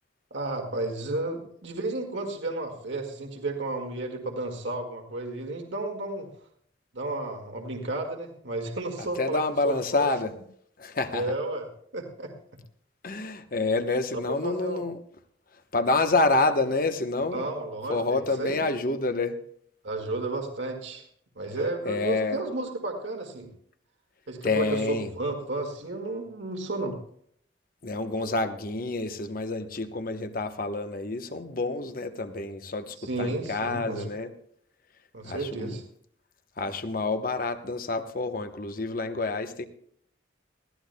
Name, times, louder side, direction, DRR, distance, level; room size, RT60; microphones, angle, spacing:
voice 1, 0.3-6.3 6.9-10.1 11.1-11.7 11.9-12.3 14.1-14.8 17.3-18.6 19.8-21.1 21.4-23.5 24.3-27.0 33.0-34.1 35.1-35.8, right 2 dB, 75° right, 2 dB, 1.9 m, -32 dB
voice 2, 9.0-10.3 10.8-11.3 13.0-15.0 15.7-17.5 17.9-19.4 21.8-22.4 24.4-25.1 27.8-34.3 35.2-35.8 36.6-39.6, left 3 dB, 45° left, 8 dB, 1.0 m, -28 dB
20.0 x 15.0 x 2.2 m, 0.64 s
head